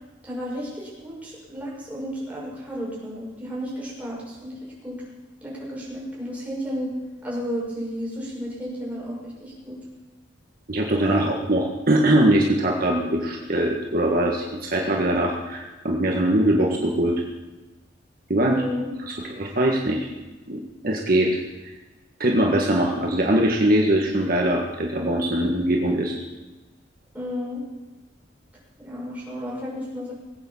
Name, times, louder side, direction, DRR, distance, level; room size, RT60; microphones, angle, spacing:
voice 1, 0.2-5.0 5.4-6.9 7.2-9.8 11.2-11.3 18.5-18.9 27.1-27.6 28.8-30.1, equal, 10° right, -6 dB, 6.2 m, -33 dB
voice 2, 10.7-17.2 18.3-18.6 19.3-20.1 20.5-21.4 22.2-26.2, right 1 dB, 50° right, -1 dB, 1.7 m, -22 dB
19.5 x 8.8 x 7.3 m, 1.2 s
head